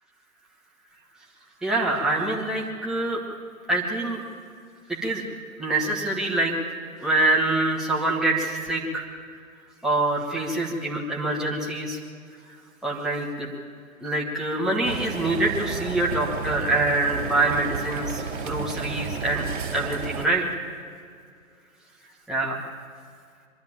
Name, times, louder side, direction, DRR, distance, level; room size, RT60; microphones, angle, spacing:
voice 1, 1.6-3.2 3.7-4.2 5.0-5.2 5.6-6.5 7.0-9.1 9.8-12.0 12.8-13.5 14.0-19.4 19.7-20.6 22.3-22.7, right 2 dB, ahead, -4 dB, 2.3 m, -25 dB
sound 1, 14.8-20.3, right 5 dB, 60° right, 3.2 m, -32 dB
23.5 x 13.0 x 9.0 m, 2.2 s
figure-of-eight pair, 125°, 41 cm